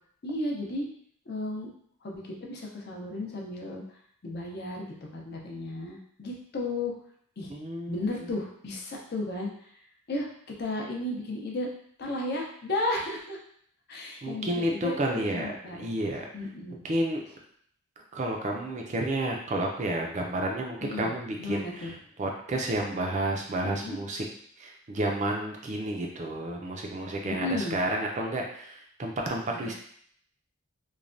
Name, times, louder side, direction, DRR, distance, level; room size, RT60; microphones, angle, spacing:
voice 1, 0.2-0.9 1.3-1.7 2.0-3.8 4.2-6.9 7.4-7.5 7.9-9.5 10.1-10.3 10.6-11.7 12.0-13.4 13.9-15.9 16.3-16.8 20.8-21.1 21.4-21.9 23.6-24.0 27.2-27.8, left 2 dB, 50° left, -1 dB, 0.6 m, -34 dB
voice 2, 7.5-8.3 14.2-16.3 16.8-17.2 18.1-21.9 22.2-24.2 24.6-29.7, right 1 dB, 35° right, 1 dB, 0.4 m, -31 dB
3.1 x 2.2 x 2.5 m, 0.64 s
head